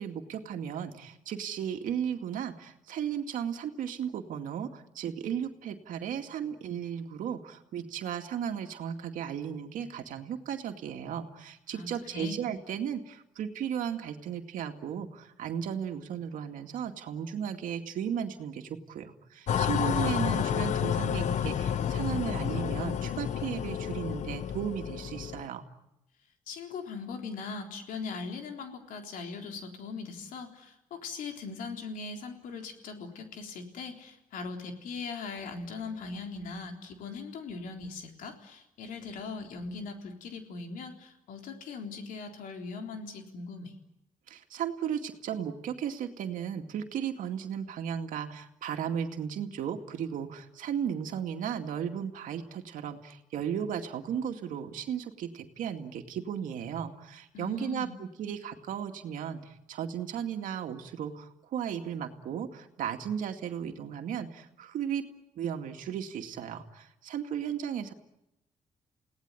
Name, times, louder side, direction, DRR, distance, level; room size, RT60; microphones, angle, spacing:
voice 1, 0.0-25.7 44.3-65.1 65.4-67.9, right 8 dB, 80° right, 5 dB, 2.3 m, -35 dB
sound 1, 19.5-25.5, left 9 dB, 65° left, 0.9 m, -30 dB
voice 2, 26.5-43.7 57.3-58.0, left 4 dB, 90° left, 3 dB, 3.9 m, -40 dB
29.5 x 18.0 x 9.7 m, 0.88 s
cardioid pair, 110°, 14 cm